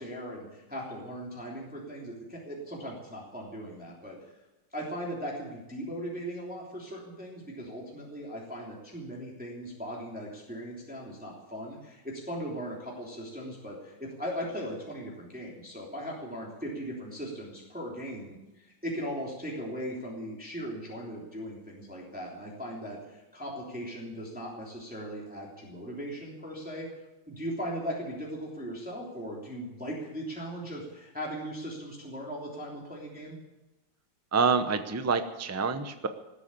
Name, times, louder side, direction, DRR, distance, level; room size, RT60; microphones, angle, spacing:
voice 1, 0.0-4.2 4.7-26.9 27.3-33.4, equal, 5° right, -3 dB, 3.1 m, -38 dB
voice 2, 34.3-36.1, right 5 dB, 20° right, 9 dB, 0.4 m, -27 dB
18.5 x 8.3 x 8.5 m, 1.0 s
omnidirectional pair, 2.1 m